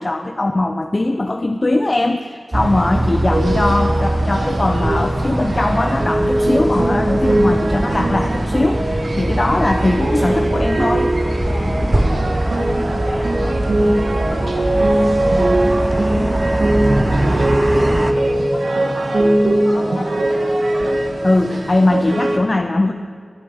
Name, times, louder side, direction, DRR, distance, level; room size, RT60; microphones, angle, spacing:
voice 1, 0.0-11.1 21.2-22.9, left 2 dB, 35° left, 6 dB, 0.6 m, -19 dB
sound 1, 2.5-18.1, right 1 dB, 30° right, 0.8 m, -22 dB
voice 2, 2.6-3.1 9.6-10.2 11.4-17.5 17.8-20.4, left 1 dB, 55° left, 0 dB, 2.4 m, -34 dB
sound 2, 3.3-22.4, right 1 dB, 80° right, 1.6 m, -20 dB
13.0 x 11.0 x 7.9 m, 2.3 s
wide cardioid pair, 75°, 0 cm